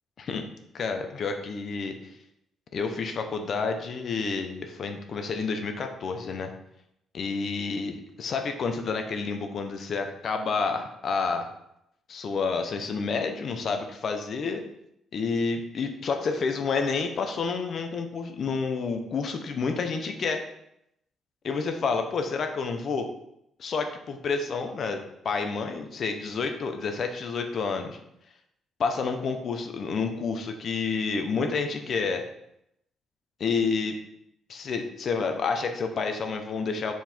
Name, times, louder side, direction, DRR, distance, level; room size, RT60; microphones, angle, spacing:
voice 1, 0.7-2.0 2.7-6.5 7.1-11.5 12.1-14.6 15.1-20.4 21.4-23.1 23.6-25.0 25.2-28.0 28.8-32.2 33.4-34.0 34.5-36.9, left 4 dB, 55° left, 6 dB, 1.0 m, -29 dB
5.7 x 4.7 x 4.5 m, 0.80 s
cardioid pair, 90°, 0 cm